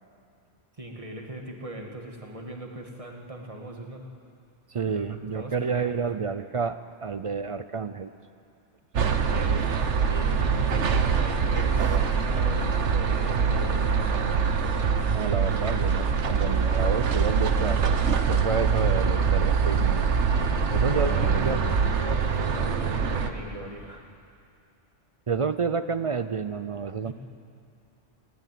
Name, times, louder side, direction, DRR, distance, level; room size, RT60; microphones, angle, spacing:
voice 1, 0.8-4.1 4.9-6.1 9.2-13.8 18.9-19.2 21.0-21.4 21.8-24.0 27.0-27.1, right 1 dB, 30° right, 1 dB, 2.0 m, -39 dB
voice 2, 4.7-8.1 15.1-18.0 18.3-20.0 20.7-21.1 21.4-21.6 25.3-27.1, right 5 dB, 45° right, 12 dB, 0.4 m, -29 dB
sound 1, 8.9-23.3, right 6 dB, 75° right, 1.3 m, -24 dB
19.0 x 16.5 x 9.3 m, 2.4 s
omnidirectional pair, 1.2 m